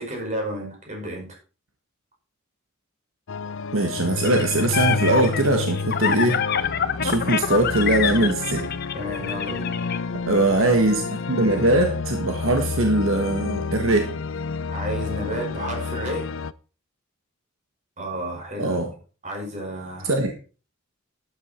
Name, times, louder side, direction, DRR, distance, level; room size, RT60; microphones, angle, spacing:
voice 1, 0.0-1.4 8.9-9.8 14.7-16.3 18.0-18.8 19.2-20.1, right 1 dB, 35° right, 0 dB, 6.0 m, -31 dB
sound 1, 3.3-16.5, left 4 dB, 65° left, 0.6 m, -30 dB
voice 2, 3.7-6.4 7.0-8.7 10.3-14.1 18.6-18.9 20.0-20.3, right 2 dB, 75° right, 4 dB, 1.6 m, -21 dB
sound 2, 4.2-10.0, left 7 dB, 50° left, 1.0 m, -26 dB
12.5 x 9.6 x 4.5 m, 0.35 s
head